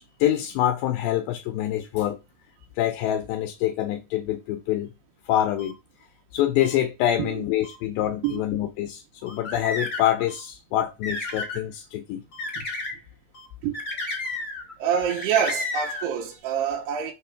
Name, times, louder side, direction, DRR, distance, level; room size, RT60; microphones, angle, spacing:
voice 1, 0.0-2.2 2.8-4.9 5.3-5.8 6.3-12.2, left 12 dB, 80° left, 2.2 m, -26 dB
sound 1, 5.6-5.7 6.6-6.7 7.6-7.8 8.2-8.4 9.3-9.4 10.3-10.4 11.3-11.4 12.3-12.4 13.3-13.5 14.2-14.4, left 1 dB, 55° left, 1.4 m, -47 dB
sound 2, 9.2-10.2 10.8-11.6 12.4-13.0 13.7-14.7 15.1-16.1, left 3 dB, 30° left, 1.7 m, -31 dB
voice 2, 14.8-17.1, right 8 dB, 85° right, 3.1 m, -26 dB
6.4 x 3.0 x 5.7 m
omnidirectional pair, 4.6 m